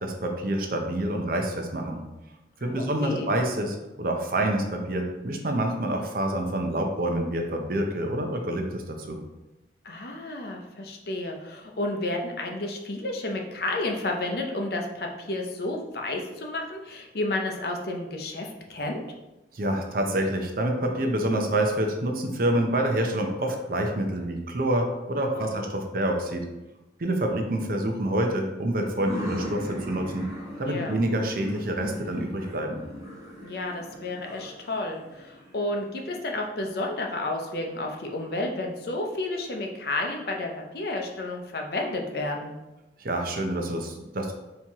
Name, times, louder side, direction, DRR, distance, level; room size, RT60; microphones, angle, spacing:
voice 1, 0.0-2.0 2.6-9.2 19.5-26.4 27.0-30.3 30.6-32.8 43.0-44.3, right 1 dB, 55° right, 3 dB, 0.6 m, -27 dB
voice 2, 2.6-3.3 9.8-19.0 25.3-25.7 30.7-31.0 33.4-42.6, left 2 dB, 60° left, 2 dB, 0.6 m, -31 dB
sound 1, 28.8-36.4, left 1 dB, 20° right, 1.1 m, -39 dB
4.4 x 2.9 x 3.5 m, 1.0 s
head